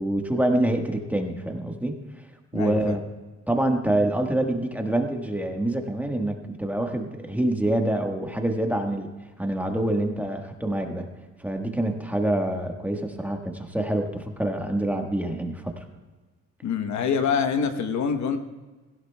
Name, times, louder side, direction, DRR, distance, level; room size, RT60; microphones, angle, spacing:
voice 1, 0.0-2.0 2.5-3.0 3.5-9.1 9.4-11.1 11.4-15.8, right 1 dB, 5° right, 3 dB, 1.4 m, -26 dB
voice 2, 2.5-3.0 16.6-18.4, left 6 dB, 70° left, 7 dB, 1.1 m, -25 dB
17.5 x 16.0 x 2.3 m, 1.3 s
cardioid pair, 90°, 30 cm